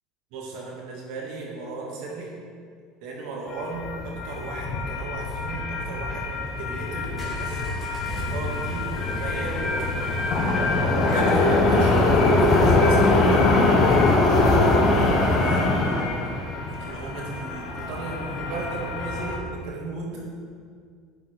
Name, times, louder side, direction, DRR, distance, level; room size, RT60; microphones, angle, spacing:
voice 1, 0.3-2.3 3.0-10.0 10.9-16.1 16.8-20.3, right 3 dB, 70° right, -2 dB, 2.0 m, -35 dB
sound 1, 3.5-19.4, left 2 dB, 40° left, 1.2 m, -23 dB
sound 2, 4.9-18.8, equal, 10° left, 1.9 m, -40 dB
10.0 x 4.6 x 4.5 m, 2.1 s
cardioid pair, 145°, 0 cm